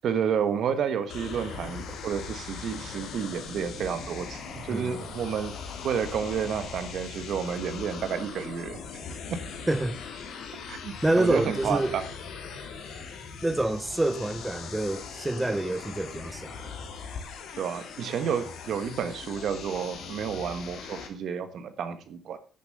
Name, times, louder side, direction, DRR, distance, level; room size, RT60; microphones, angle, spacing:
voice 1, 0.0-5.5 5.8-8.8 9.3-9.4 10.7-12.0 17.6-22.4, right 7 dB, 70° right, 1.4 m, -30 dB
sound 1, 1.1-21.1, left 5 dB, 80° left, 2.4 m, -40 dB
voice 2, 4.7-5.0 9.7-10.0 11.0-12.0 13.4-16.8, right 1 dB, 10° right, 0.8 m, -27 dB
10.5 x 7.1 x 6.5 m
cardioid pair, 90°, 0 cm